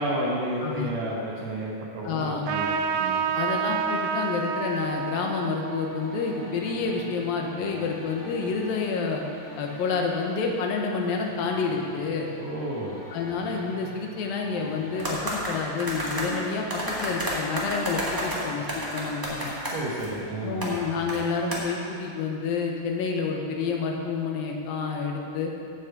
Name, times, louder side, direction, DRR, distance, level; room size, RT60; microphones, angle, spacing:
voice 1, 0.0-3.3 12.4-13.0 19.7-20.7, right 1 dB, 60° right, -6 dB, 2.1 m, -31 dB
voice 2, 2.0-2.5 3.3-9.2 9.6-12.3 13.1-19.5 20.4-25.5, left 4 dB, 80° left, 1 dB, 2.8 m, -29 dB
Trumpet, 2.5-7.5, right 6 dB, 90° right, 2.4 m, -30 dB
sound 1, 5.6-19.3, equal, 25° left, 2.8 m, -46 dB
sound 2, 15.0-16.3 16.7-20.1 20.6-20.7 21.1-21.2 21.5-21.6, equal, 10° right, 1.0 m, -30 dB
8.4 x 7.3 x 7.9 m, 2.5 s
omnidirectional pair, 4.0 m